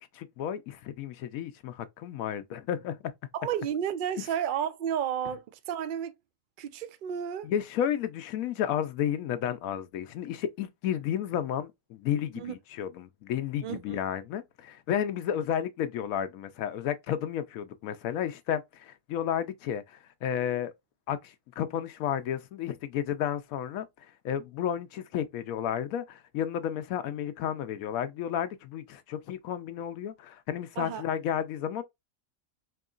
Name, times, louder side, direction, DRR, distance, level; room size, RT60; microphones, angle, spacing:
voice 1, 0.1-3.0 7.4-20.7 21.1-23.9 24.2-31.8, left 9 dB, 90° left, 1.0 m, -32 dB
voice 2, 3.3-6.1 6.6-7.5 12.4-12.5 13.6-14.0 30.8-31.0, right 9 dB, 85° right, 0.4 m, -32 dB
4.6 x 2.9 x 2.4 m
omnidirectional pair, 1.4 m